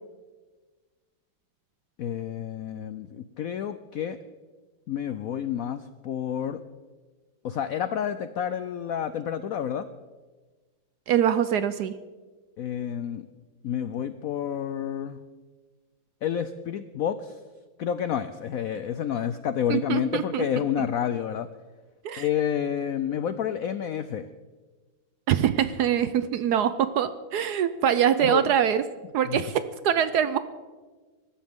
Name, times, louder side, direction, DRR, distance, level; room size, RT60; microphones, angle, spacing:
voice 1, 2.0-4.2 4.9-6.6 7.4-9.9 12.6-13.3 13.6-15.2 16.2-17.4 17.8-21.5 22.2-24.3 28.2-28.5 29.3-29.5, left 9 dB, 80° left, 12 dB, 0.7 m, -29 dB
voice 2, 11.1-11.9 19.7-20.4 20.8-20.9 22.0-22.2 25.3-28.8 29.1-30.4, right 9 dB, 70° right, 13 dB, 1.0 m, -24 dB
24.0 x 13.0 x 3.6 m, 1.4 s
omnidirectional pair, 2.1 m